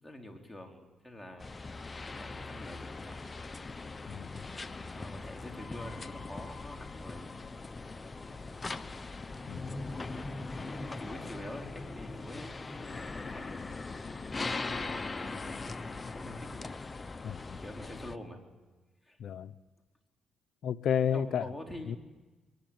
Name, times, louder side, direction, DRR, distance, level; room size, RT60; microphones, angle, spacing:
voice 1, 0.0-1.5 2.0-3.2 4.9-7.3 10.1-13.7 14.4-16.6 17.6-18.4 19.0-19.2 21.1-22.0, left 1 dB, 5° left, 1 dB, 4.4 m, -46 dB
sound 1, 1.4-18.2, left 3 dB, 25° left, 1.0 m, -40 dB
voice 2, 4.1-4.4 9.5-9.7 17.2-17.6 19.2-19.5 20.6-21.5 21.9-22.0, left 8 dB, 70° left, 12 dB, 0.7 m, -31 dB
23.5 x 20.0 x 8.9 m, 1.2 s
cardioid pair, 90°, 0 cm